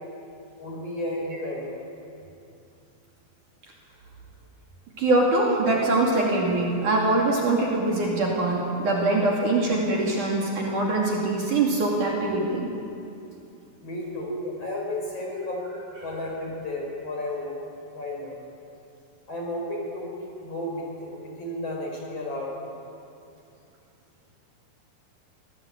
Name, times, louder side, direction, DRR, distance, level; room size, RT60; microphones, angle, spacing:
voice 1, 0.6-1.8 13.8-15.6 16.0-17.6 17.9-18.4 19.3-20.1 20.4-22.7, left 1 dB, 35° left, -1 dB, 5.8 m, -33 dB
voice 2, 5.0-12.7, right 2 dB, 50° right, -2 dB, 3.7 m, -23 dB
24.5 x 18.5 x 8.8 m, 2.6 s
omnidirectional pair, 5.0 m